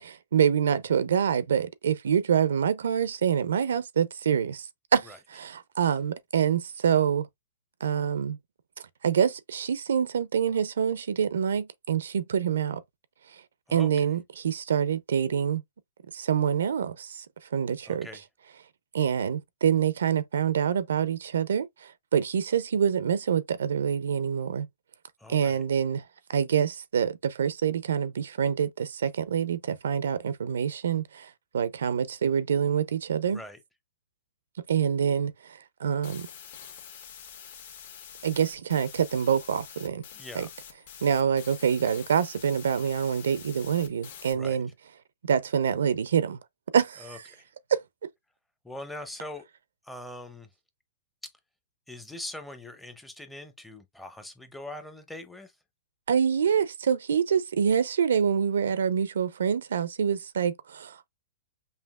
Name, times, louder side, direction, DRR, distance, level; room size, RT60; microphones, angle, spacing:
voice 1, 0.0-4.7 4.9-7.3 7.8-8.4 9.0-12.8 13.7-15.6 16.1-17.2 17.5-18.1 18.9-21.7 22.1-24.7 25.3-26.0 26.3-31.3 31.5-33.4 34.7-35.3 35.8-36.3 38.2-40.0 40.4-40.5 41.0-44.7 45.3-46.4 46.7-47.1 47.7-47.8 56.1-61.1, right 7 dB, 85° right, 0.5 m, -26 dB
voice 2, 13.7-14.1 17.9-18.2 25.2-25.6 33.3-33.6 40.1-40.5 44.3-44.6 47.0-47.4 48.6-49.5 49.8-50.5 51.2-51.3 51.9-55.5, left 1 dB, 5° left, 0.6 m, -42 dB
sound 1, 36.0-44.3, left 8 dB, 60° left, 1.2 m, -46 dB
5.5 x 2.5 x 2.3 m
hypercardioid pair, 150°, 0 cm